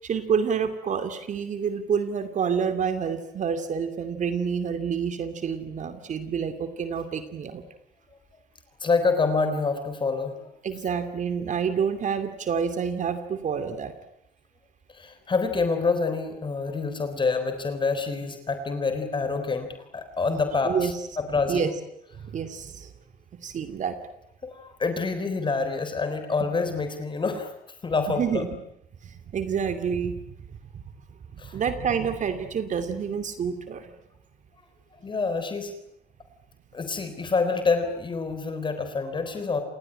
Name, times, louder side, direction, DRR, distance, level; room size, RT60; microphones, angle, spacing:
voice 1, 0.0-7.6 10.6-13.9 20.7-20.9 21.5-21.7 22.2-22.9 23.4-24.0 28.1-28.6 29.0-30.1 30.7-30.8 31.3-33.9, right 6 dB, 45° right, 9 dB, 2.6 m, -28 dB
voice 2, 8.8-10.5 14.9-21.7 24.4-27.5 27.8-28.5 31.4-31.6 35.0-35.7 36.7-39.6, left 4 dB, 30° left, 8 dB, 3.7 m, -27 dB
28.5 x 19.0 x 10.0 m, 0.80 s
cardioid pair, 110°, 17 cm